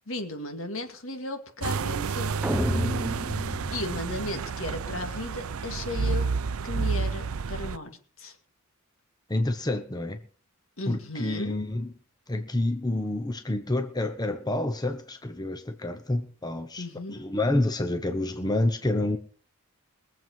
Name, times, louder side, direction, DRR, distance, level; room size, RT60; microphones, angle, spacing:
voice 1, 0.1-2.3 3.7-6.3 6.6-8.4 10.8-11.6 16.8-17.2, left 2 dB, 65° left, 2.4 m, -35 dB
sound 1, 1.6-7.8, right 5 dB, 80° right, 0.6 m, -30 dB
sound 2, 2.4-4.7, equal, 5° right, 0.8 m, -31 dB
voice 2, 9.3-10.2 10.9-11.9 12.3-19.2, left 2 dB, 20° left, 1.0 m, -28 dB
22.0 x 7.7 x 5.6 m
head